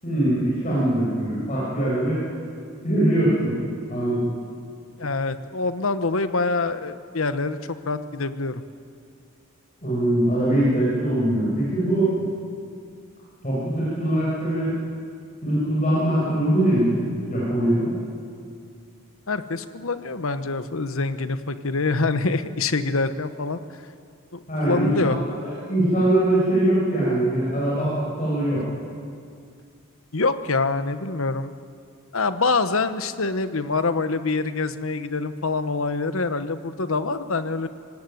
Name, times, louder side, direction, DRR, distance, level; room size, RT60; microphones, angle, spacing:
voice 1, 0.0-2.2 2.8-3.5 3.9-4.3 9.8-12.1 13.4-14.7 15.4-17.9 24.5-24.9 25.4-28.6, right 1 dB, 35° left, -7 dB, 7.3 m, -22 dB
voice 2, 5.0-7.6 7.9-8.6 19.3-23.6 24.3-25.2 30.1-31.5 32.1-37.7, left 3 dB, 75° left, 11 dB, 1.1 m, -25 dB
25.5 x 18.0 x 9.4 m, 2.3 s
head